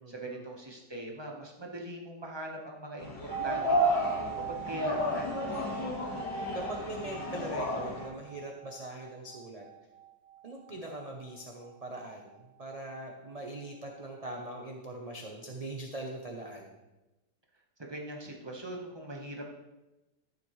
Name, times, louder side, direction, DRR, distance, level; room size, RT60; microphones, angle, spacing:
voice 1, 0.1-5.3 17.8-19.5, right 1 dB, 15° right, 0 dB, 1.1 m, -41 dB
sound 1, 3.0-8.0, equal, 90° left, 2.3 m, -32 dB
sound 2, 3.3-13.0 13.3-13.4, right 9 dB, 65° right, 0.9 m, -42 dB
voice 2, 6.5-9.7 10.4-16.7, right 1 dB, 35° right, 0 dB, 0.6 m, -41 dB
12.5 x 7.3 x 3.2 m, 1.0 s
omnidirectional pair, 1.8 m